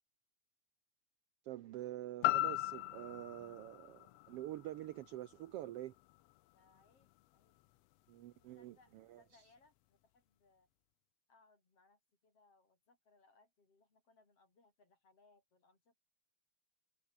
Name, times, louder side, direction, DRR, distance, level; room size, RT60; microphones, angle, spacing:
voice 1, 1.4-5.9 8.1-9.2, right 14 dB, 70° right, 1.4 m, -46 dB
sound 1, 2.2-6.3 6.8-6.9, left 18 dB, 75° left, 1.5 m, -39 dB
voice 2, 6.5-7.6 8.5-10.7 11.3-16.0, left 3 dB, 50° left, 7.0 m, -71 dB
omnidirectional pair, 3.3 m